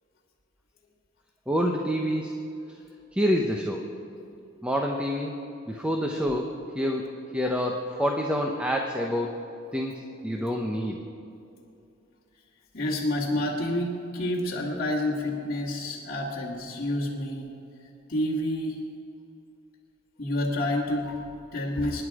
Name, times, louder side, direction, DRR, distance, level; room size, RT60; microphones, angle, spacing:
voice 1, 1.5-2.3 3.1-3.8 4.6-5.4 5.7-7.1 7.3-9.3 9.7-9.9 10.2-11.0, equal, 5° right, 1 dB, 0.9 m, -27 dB
voice 2, 12.7-17.5 18.1-18.8 20.2-22.0, left 1 dB, 45° left, -5 dB, 2.0 m, -29 dB
25.0 x 10.0 x 4.9 m, 2.7 s
head